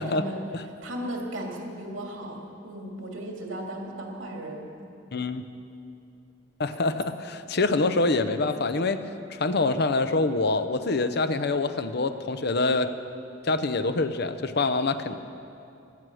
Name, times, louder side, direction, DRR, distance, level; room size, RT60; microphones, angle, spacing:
voice 1, 0.0-0.4 0.8-4.7, right 1 dB, 85° right, 0 dB, 2.8 m, -36 dB
voice 2, 5.1-5.4 6.6-9.0 9.3-12.9 13.4-15.2, left 3 dB, 55° left, 10 dB, 0.7 m, -25 dB
17.0 x 12.5 x 6.3 m, 2.7 s
head